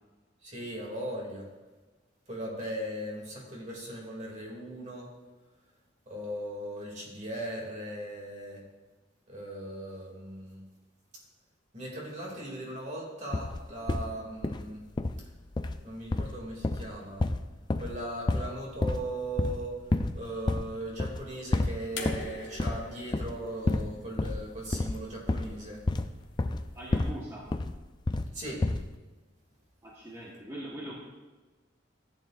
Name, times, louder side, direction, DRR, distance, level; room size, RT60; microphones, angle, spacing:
voice 1, 0.4-1.5 2.3-5.1 6.0-8.6 9.3-10.6 11.1-11.2 11.7-14.8 15.8-17.3 17.7-25.9 28.3-28.7, right 1 dB, 40° right, -2 dB, 2.7 m, -38 dB
sound 1, 13.3-14.1 14.4-14.6 15.0-15.2 15.6-15.8 16.1-18.0 18.3-18.5 18.8-19.1 19.4-19.6 19.9-20.2 20.5-20.7 21.0-21.2 21.5-22.3 22.6-22.9 23.1-23.4 23.7-23.9 24.2-27.2 27.5-28.3 28.6-28.9, left 2 dB, 25° left, 0.4 m, -30 dB
sound 2, 22.0-25.1 26.3-26.4, left 4 dB, 75° left, 1.5 m, -44 dB
voice 2, 26.7-27.5 29.8-30.9, right 1 dB, 15° right, -6 dB, 1.3 m, -41 dB
14.5 x 9.1 x 2.6 m, 1.2 s
head